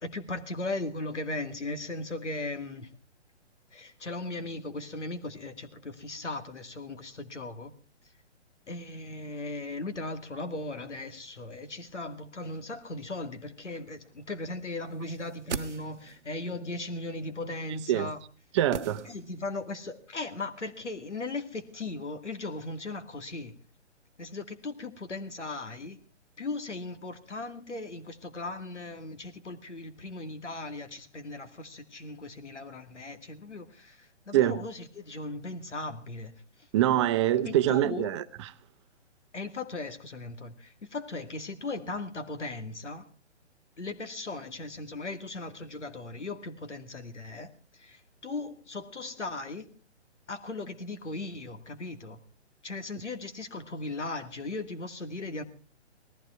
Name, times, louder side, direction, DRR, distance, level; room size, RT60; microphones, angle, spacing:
voice 1, 0.0-2.9 3.7-7.7 8.7-18.2 19.1-23.6 24.2-26.0 26.4-37.0 37.4-38.1 39.3-43.1 43.8-49.7 50.3-52.2 52.6-55.4, left 2 dB, 80° left, 2.4 m, -38 dB
sound 1, 15.1-16.3 18.7-19.6 19.9-20.0, right 5 dB, 80° right, 1.0 m, -38 dB
voice 2, 18.5-19.1 34.3-34.6 36.7-38.5, right 12 dB, 25° right, 0.8 m, -25 dB
18.5 x 14.5 x 4.5 m
figure-of-eight pair, 135°, 35 cm